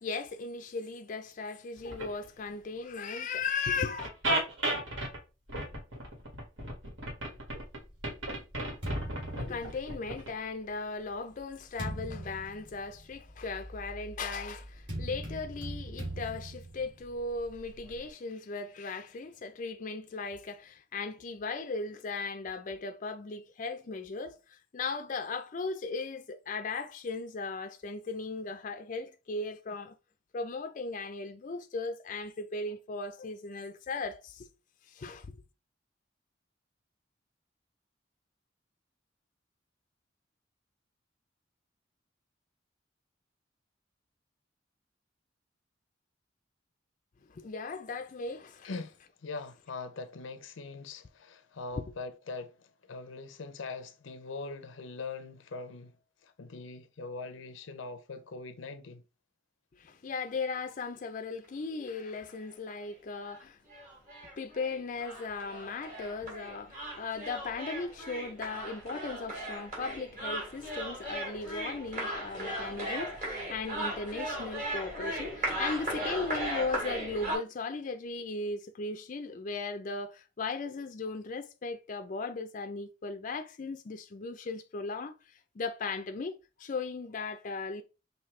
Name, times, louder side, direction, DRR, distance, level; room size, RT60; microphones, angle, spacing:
voice 1, 0.0-4.1 8.9-9.0 9.4-29.9 30.3-34.5 34.9-35.4 47.3-48.7 51.8-51.9 59.7-63.6 64.4-87.8, left 4 dB, 45° left, 0.4 m, -37 dB
sound 1, 1.8-2.3 3.4-3.5 4.0-5.2 5.5-10.3, right 1 dB, 85° right, 1.8 m, -34 dB
sound 2, 7.5-10.3 11.0-18.1, right 1 dB, 65° right, 2.7 m, -42 dB
voice 2, 48.6-49.0 49.2-52.5 52.9-55.9 56.2-59.0, left 3 dB, 85° left, 0.6 m, -42 dB
sound 3, 61.9-62.0 62.3-62.4 62.7-62.8 63.3-63.4 63.7-77.4, right 1 dB, 45° right, 2.4 m, -37 dB
5.7 x 2.7 x 3.2 m
head